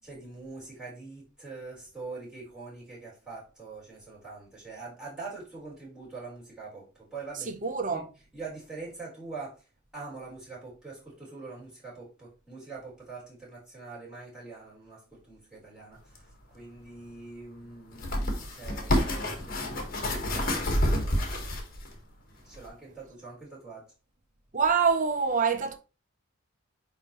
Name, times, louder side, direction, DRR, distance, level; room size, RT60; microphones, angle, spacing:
voice 1, 0.0-7.5 7.9-8.0 8.3-9.7 9.9-19.4 20.1-21.5 22.4-23.8, right 3 dB, 5° right, 4.1 m, -44 dB
voice 2, 7.5-8.1 24.5-25.8, right 5 dB, 35° right, 0.8 m, -25 dB
sound 1, 16.1-16.2 17.9-21.9 22.5-22.7, left 1 dB, 40° left, 1.5 m, -28 dB
9.6 x 3.6 x 3.1 m
head